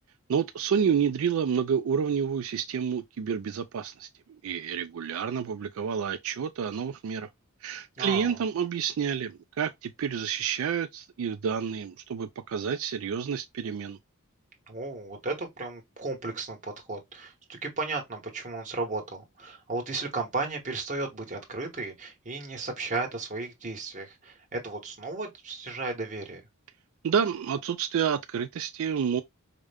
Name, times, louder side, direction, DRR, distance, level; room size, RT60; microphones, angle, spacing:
voice 1, 0.3-4.1 4.4-7.3 7.6-14.0 27.0-29.2, right 7 dB, 70° right, 0.4 m, -29 dB
voice 2, 8.0-8.4 14.7-26.4, right 3 dB, 35° right, 1.2 m, -34 dB
4.9 x 2.2 x 3.4 m
head